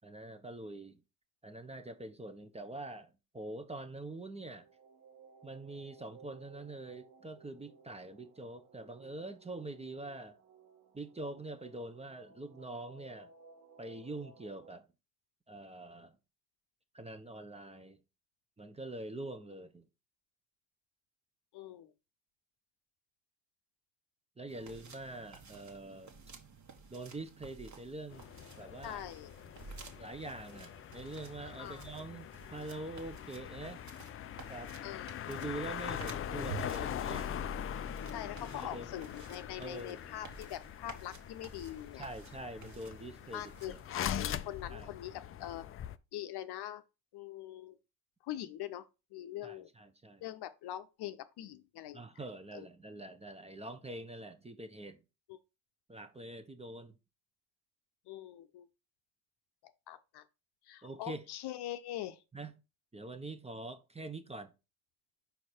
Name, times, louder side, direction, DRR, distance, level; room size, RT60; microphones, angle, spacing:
voice 1, 0.0-1.0 1.4-4.7 5.4-10.4 10.9-13.3 13.8-14.9 15.5-16.2 16.9-18.0 18.6-19.8 24.4-26.2 26.9-28.3 28.6-29.0 30.0-33.8 34.5-34.7 35.3-37.3 38.5-38.9 39.6-40.0 41.9-43.8 44.7-44.9 49.4-50.2 51.9-55.0 55.9-57.0 60.8-61.2 62.3-62.5 62.9-64.5, right 2 dB, 15° right, 0.9 m, -45 dB
sound 1, 4.2-14.7, right 5 dB, 75° right, 1.3 m, -59 dB
voice 2, 21.5-21.9 28.8-29.3 31.6-31.8 34.8-35.2 38.1-42.0 43.3-46.8 47.1-47.8 48.2-49.7 50.2-52.0 52.5-52.7 55.3-55.4 58.1-58.7 59.6-60.2 60.7-62.2, left 12 dB, 55° left, 0.8 m, -43 dB
sound 2, 24.5-44.0, right 6 dB, 35° right, 1.6 m, -53 dB
sound 3, 28.1-46.0, left 10 dB, 30° left, 0.4 m, -42 dB
5.5 x 4.6 x 4.4 m
hypercardioid pair, 70°, 48 cm